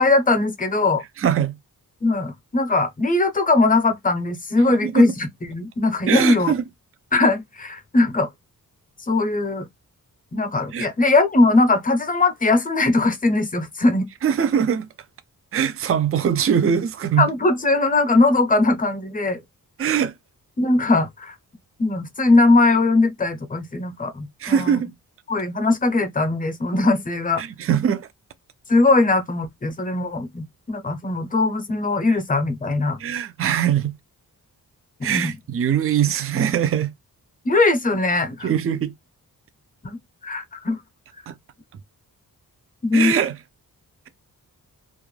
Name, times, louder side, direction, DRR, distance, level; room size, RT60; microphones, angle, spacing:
voice 1, 0.0-1.0 2.0-6.5 7.1-8.3 9.1-9.7 10.3-14.1 17.2-19.4 20.6-21.3 21.8-24.8 25.3-27.4 28.7-33.0 35.0-35.3 37.4-38.5 39.8-40.8 42.8-43.1, left 2 dB, 25° left, 0.6 m, -20 dB
voice 2, 1.2-1.6 4.7-5.1 6.1-6.6 10.7-10.9 14.2-14.9 15.5-17.3 19.8-20.1 24.4-24.9 27.4-28.1 33.0-33.9 35.0-36.9 38.4-38.9 41.3-41.4 42.9-43.4, right 8 dB, 40° right, 0.4 m, -22 dB
2.4 x 2.1 x 3.1 m
wide cardioid pair, 85°, 36 cm